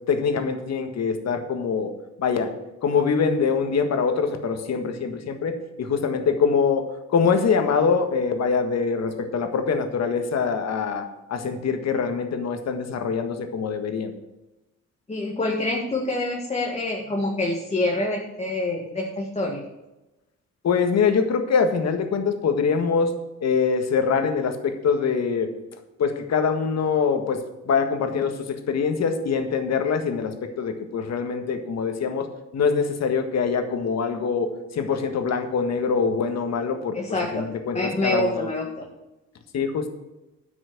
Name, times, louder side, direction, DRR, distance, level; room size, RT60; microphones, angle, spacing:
voice 1, 0.1-1.9 2.2-2.5 2.8-14.1 20.6-23.1 23.4-25.5 26.0-32.3 32.5-37.0 37.3-38.5 39.5-39.9, left 5 dB, 60° left, 7 dB, 1.7 m, -24 dB
voice 2, 15.1-19.6 36.9-37.5 37.7-38.9, left 2 dB, 20° left, -1 dB, 1.9 m, -26 dB
9.8 x 6.2 x 7.8 m, 1.0 s
cardioid pair, 90°, 30 cm